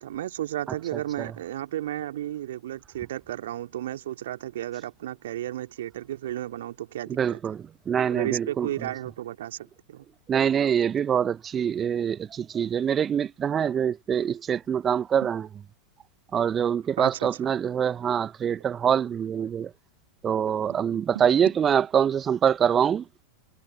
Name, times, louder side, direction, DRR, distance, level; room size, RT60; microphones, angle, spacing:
voice 1, 0.0-7.4 8.1-10.0 15.2-15.3 17.0-17.3 20.7-20.8 21.1-21.5, right 13 dB, 60° right, 2.7 m, -33 dB
voice 2, 7.1-8.7 10.3-15.4 16.3-19.7 20.2-23.0, right 8 dB, 25° right, 1.4 m, -24 dB
figure-of-eight pair, 90°, 0 cm